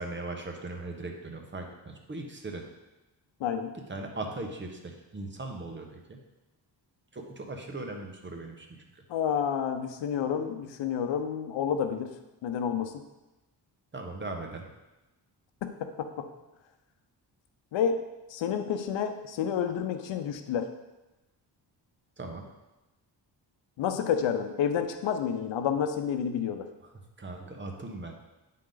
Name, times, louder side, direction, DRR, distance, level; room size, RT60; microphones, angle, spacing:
voice 1, 0.0-2.7 3.9-6.2 7.1-8.8 13.9-14.7 22.2-22.5 27.2-28.1, right 2 dB, 25° right, 3 dB, 0.9 m, -39 dB
voice 2, 3.4-3.7 9.1-12.1 12.4-12.9 15.6-16.3 17.7-18.0 18.3-20.7 23.8-26.6, left 8 dB, 85° left, 8 dB, 0.7 m, -29 dB
8.6 x 3.8 x 3.8 m, 1.0 s
cardioid pair, 100°, 44 cm